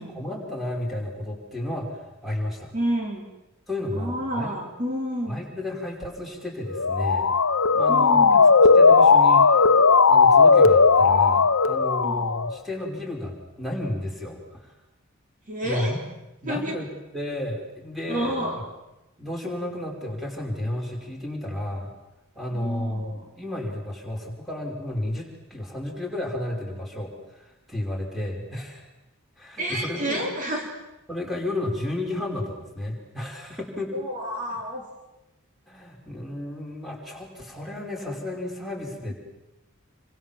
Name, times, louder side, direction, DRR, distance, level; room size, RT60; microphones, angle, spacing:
voice 1, 0.0-2.7 3.7-4.6 5.3-7.3 7.7-8.5 8.7-9.4 10.1-14.7 15.6-16.0 16.4-18.6 19.2-21.9 22.4-28.9 29.4-30.2 31.1-33.9 34.5-34.6 35.7-39.1, left 1 dB, ahead, 0 dB, 5.7 m, -32 dB
voice 2, 2.7-3.3 3.9-5.4 7.9-8.6 12.0-12.2 15.5-15.9 16.4-16.8 18.1-18.6 22.5-23.3 29.6-30.7 33.9-34.9, equal, 35° right, 0 dB, 4.0 m, -30 dB
Motor vehicle (road) / Siren, 6.7-12.6, left 4 dB, 75° left, 1.0 m, -16 dB
28.0 x 25.5 x 7.5 m, 0.95 s
head